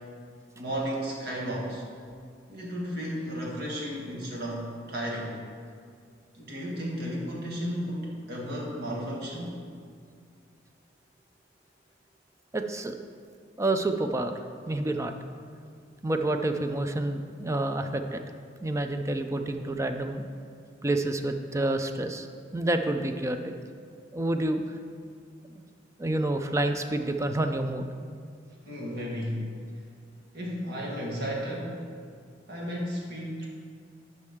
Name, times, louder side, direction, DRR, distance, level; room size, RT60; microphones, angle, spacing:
voice 1, 0.5-1.8 2.5-5.4 6.3-9.6 28.6-29.5 30.3-31.9 32.5-33.5, equal, 60° right, -3 dB, 1.7 m, -33 dB
voice 2, 12.5-13.0 13.6-14.3 14.7-15.1 16.0-18.2 18.6-20.2 20.8-22.3 22.5-23.5 24.1-24.6 25.5-25.6 26.0-27.9, right 2 dB, 15° right, 6 dB, 0.4 m, -28 dB
11.0 x 5.3 x 3.6 m, 2.1 s
head